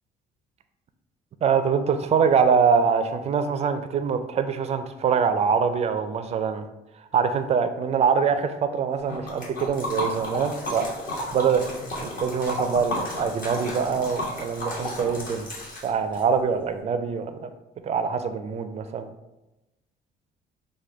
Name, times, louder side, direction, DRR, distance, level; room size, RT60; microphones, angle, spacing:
voice 1, 1.4-6.7 7.1-10.9 11.3-11.6 12.0-15.5 15.8-17.5 17.8-19.1, right 6 dB, 40° right, 9 dB, 0.4 m, -24 dB
Liquid, 9.1-16.2, left 1 dB, 55° left, 1.2 m, -33 dB
6.1 x 2.2 x 3.3 m, 0.98 s
cardioid pair, 110°, 17 cm